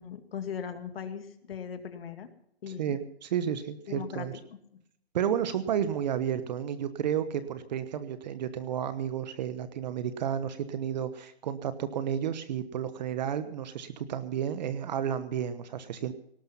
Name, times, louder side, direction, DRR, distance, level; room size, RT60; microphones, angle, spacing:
voice 1, 0.0-2.3 2.6-3.0 3.9-4.8, left 7 dB, 65° left, 8 dB, 2.4 m, -39 dB
voice 2, 2.8-4.3 5.1-16.1, right 9 dB, 45° right, 12 dB, 1.2 m, -32 dB
18.5 x 12.0 x 5.6 m, 0.72 s
hypercardioid pair, 155°, 32 cm